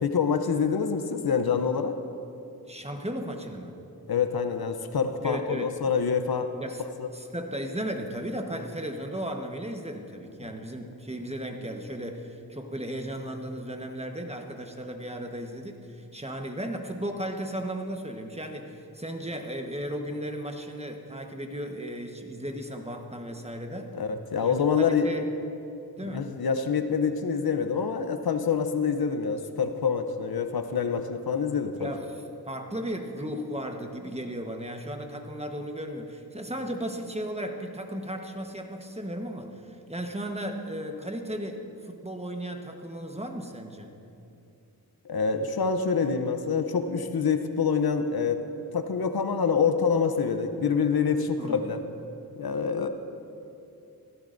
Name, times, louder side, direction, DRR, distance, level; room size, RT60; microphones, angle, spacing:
voice 1, 0.0-1.9 4.1-6.5 7.0-7.1 23.9-25.1 26.1-31.9 45.1-48.4 48.7-51.8 52.4-52.9, left 6 dB, 70° left, 8 dB, 0.7 m, -26 dB
voice 2, 2.7-3.8 5.2-6.0 6.6-6.8 7.1-23.9 24.4-25.2 26.0-26.4 31.7-32.1 32.5-43.9 51.4-51.7, equal, 15° right, 4 dB, 1.2 m, -35 dB
17.0 x 15.0 x 2.6 m, 2.7 s
cardioid pair, 50°, 38 cm